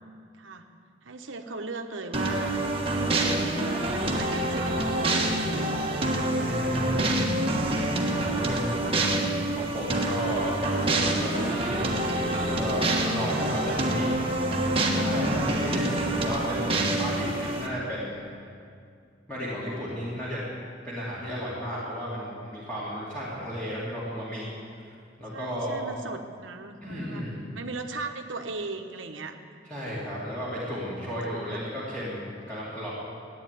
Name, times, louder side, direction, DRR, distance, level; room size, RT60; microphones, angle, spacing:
voice 1, 1.0-2.5 3.1-6.3 8.3-9.2 15.4-15.6 25.3-27.2 27.5-29.4 30.5-31.2 31.5-31.7, right 3 dB, 90° right, 5 dB, 1.2 m, -39 dB
sound 1, 2.1-17.7, right 1 dB, 30° right, 1.4 m, -26 dB
voice 2, 6.3-7.2 8.1-8.7 9.5-14.1 14.9-18.2 19.3-20.4 20.8-24.4 25.2-25.8 26.8-27.4 29.7-32.9, equal, 5° left, -10 dB, 2.9 m, -33 dB
14.0 x 9.3 x 9.3 m, 2.4 s
head